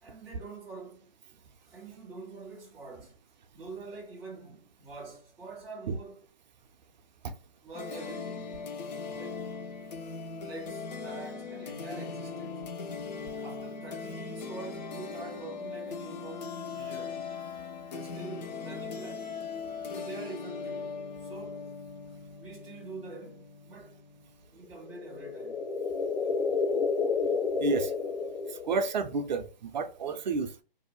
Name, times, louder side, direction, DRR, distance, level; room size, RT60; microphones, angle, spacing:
voice 1, 0.0-3.2 3.5-6.3 7.6-8.7 9.2-9.6 10.4-12.6 13.4-17.3 17.9-19.4 19.9-21.8 22.1-24.0 24.5-25.6, right 3 dB, 5° right, 0.4 m, -46 dB
sound 1, 7.7-24.3, left 5 dB, 50° left, 0.7 m, -39 dB
sound 2, 24.9-29.1, left 5 dB, 75° left, 1.0 m, -30 dB
voice 2, 27.6-27.9 28.6-30.6, right 4 dB, 50° right, 0.5 m, -30 dB
2.7 x 2.2 x 4.0 m
hypercardioid pair, 140°, 29 cm